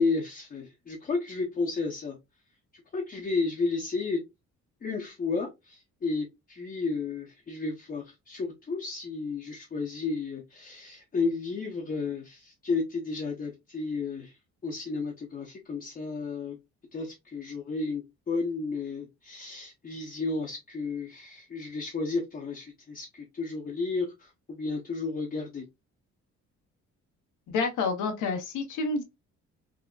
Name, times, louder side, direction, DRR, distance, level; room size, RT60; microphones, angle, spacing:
voice 1, 0.0-2.2 2.9-4.2 4.8-14.3 14.6-16.6 16.9-25.6, left 4 dB, 30° left, 0.6 m, -32 dB
voice 2, 27.5-29.0, left 4 dB, 80° left, 0.8 m, -29 dB
3.7 x 2.0 x 2.3 m
cardioid pair, 90°, 30 cm